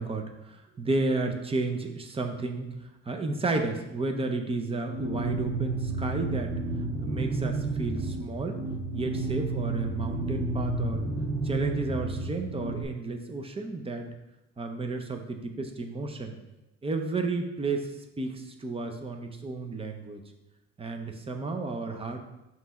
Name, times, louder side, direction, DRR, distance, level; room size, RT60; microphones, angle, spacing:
voice 1, 0.0-2.7 3.1-6.5 7.0-8.6 8.9-11.0 11.4-14.1 14.6-16.3 16.8-17.9 18.2-20.2 20.8-22.2, right 3 dB, 20° right, 4 dB, 0.6 m, -32 dB
sound 1, 4.9-12.8, right 2 dB, 70° right, 1.2 m, -31 dB
5.8 x 3.1 x 5.6 m, 0.96 s
cardioid pair, 155°, 30 cm